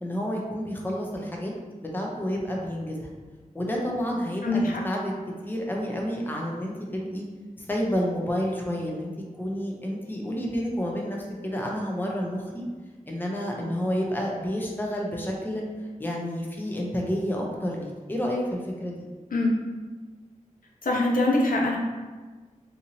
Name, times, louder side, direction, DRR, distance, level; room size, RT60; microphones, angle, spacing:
voice 1, 0.0-1.5 1.8-3.1 3.5-5.1 5.5-7.3 7.6-9.1 9.4-12.6 13.1-15.6 16.0-19.0, equal, 15° left, -1 dB, 0.5 m, -30 dB
voice 2, 4.4-4.8 19.3-19.5 20.8-21.8, left 2 dB, 80° left, -2 dB, 0.5 m, -23 dB
2.7 x 2.6 x 2.7 m, 1.4 s
wide cardioid pair, 70°, 14 cm